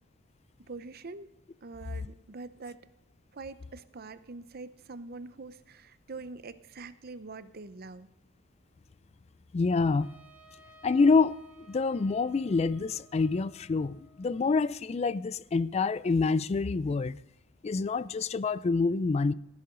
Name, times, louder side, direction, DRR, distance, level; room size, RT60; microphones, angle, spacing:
voice 1, 0.7-1.3 1.6-2.8 3.3-8.1, right 3 dB, 50° right, 0.7 m, -44 dB
voice 2, 9.5-10.1 10.8-11.4 11.7-17.2 17.6-19.3, left 4 dB, 30° left, 0.3 m, -27 dB
Trumpet, 10.0-14.8, right 2 dB, 10° right, 1.8 m, -58 dB
15.0 x 11.0 x 3.8 m
head